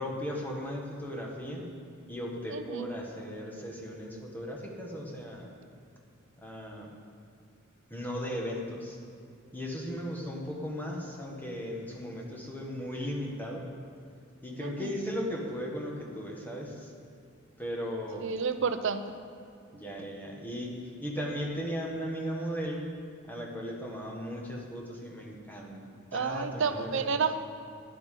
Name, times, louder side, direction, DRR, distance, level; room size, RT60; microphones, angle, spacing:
voice 1, 0.0-1.7 2.1-5.5 6.4-6.9 7.9-9.0 9.5-13.6 14.4-16.9 17.6-18.3 19.7-20.7 21.0-22.8 23.2-27.1, equal, 10° left, -1 dB, 1.6 m, -37 dB
voice 2, 2.5-2.9 14.6-14.9 18.2-19.0 26.1-27.4, right 5 dB, 65° right, 10 dB, 0.6 m, -30 dB
13.0 x 10.5 x 3.8 m, 2.5 s
head